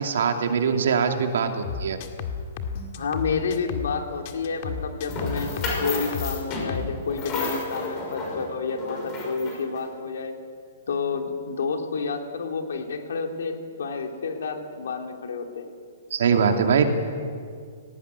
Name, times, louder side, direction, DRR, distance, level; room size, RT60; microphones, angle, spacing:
voice 1, 0.0-2.0 16.1-16.9, right 6 dB, 70° right, 5 dB, 2.6 m, -22 dB
sound 1, 1.6-4.0 4.2-7.0 7.2-7.6, left 6 dB, 40° left, 1.8 m, -33 dB
voice 2, 2.9-10.4 10.9-15.7, left 5 dB, 80° left, 4 dB, 3.1 m, -30 dB
sound 2, 5.1-9.8, left 3 dB, 25° left, 6.1 m, -32 dB
18.0 x 18.0 x 9.7 m, 2.2 s
hypercardioid pair, 160°, 0 cm